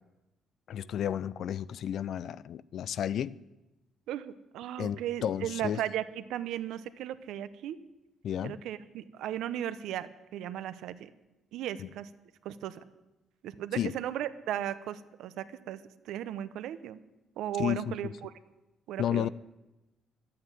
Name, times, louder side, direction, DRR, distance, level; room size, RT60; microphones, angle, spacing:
voice 1, 0.7-3.4 4.8-5.8 8.2-8.6 11.8-11.9 13.8-14.0 17.6-18.1 19.0-19.3, left 10 dB, 50° left, 0.4 m, -32 dB
voice 2, 4.1-7.8 8.4-11.1 11.5-12.1 12.4-12.8 13.4-15.8 16.0-17.0 17.4-18.3 18.9-19.3, right 11 dB, 75° right, 0.8 m, -36 dB
12.0 x 8.6 x 9.2 m
cardioid pair, 175°, 0 cm